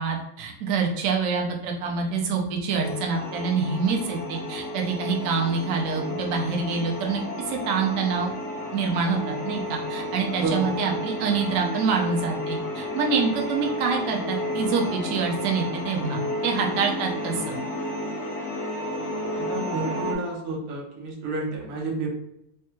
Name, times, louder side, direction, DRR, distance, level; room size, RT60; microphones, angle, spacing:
voice 1, 0.0-8.3 8.7-17.5, right 5 dB, 90° right, 1 dB, 0.7 m, -26 dB
sound 1, 2.8-20.2, left 1 dB, 65° left, 0.7 m, -32 dB
voice 2, 10.4-10.7 19.4-22.1, right 2 dB, 60° right, -2 dB, 1.2 m, -30 dB
3.3 x 2.2 x 3.0 m, 0.79 s
omnidirectional pair, 2.0 m